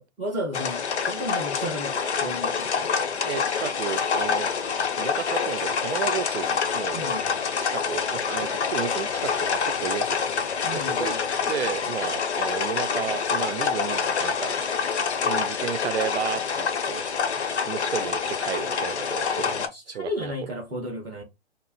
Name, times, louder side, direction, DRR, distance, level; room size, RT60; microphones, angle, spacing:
voice 1, 0.0-2.9 6.9-7.4 10.6-11.2 19.4-21.2, equal, ahead, 0.3 m, -34 dB
sound 1, 0.5-19.7, left 6 dB, 80° left, 0.8 m, -27 dB
voice 2, 3.2-4.5 5.0-7.1 7.6-11.1 11.5-14.5 15.2-17.0 17.7-19.6 19.9-20.3, right 9 dB, 80° right, 0.5 m, -33 dB
2.8 x 2.0 x 3.9 m
hypercardioid pair, 150°, 33 cm